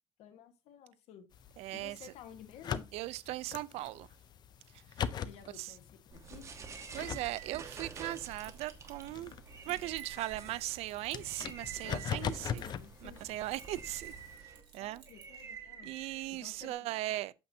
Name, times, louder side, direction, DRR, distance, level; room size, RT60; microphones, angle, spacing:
voice 1, 0.2-1.3 1.7-2.9 5.2-6.5 12.0-13.3 14.8-15.9 16.3-17.2, left 9 dB, 85° left, 1.4 m, -53 dB
sound 1, 1.3-14.3, left 8 dB, 45° left, 0.5 m, -43 dB
voice 2, 1.6-2.1 2.9-4.1 4.7-5.0 5.6-5.7 6.9-9.4 9.7-12.6 13.0-15.0 15.8-17.3, right 16 dB, 90° right, 0.5 m, -39 dB
sound 2, 6.1-16.7, right 6 dB, 30° right, 1.3 m, -49 dB
Keys jangling, 7.7-10.5 10.9-12.9 13.2-15.4, right 8 dB, 50° right, 2.7 m, -60 dB
8.7 x 7.0 x 2.7 m
cardioid pair, 150°, 10 cm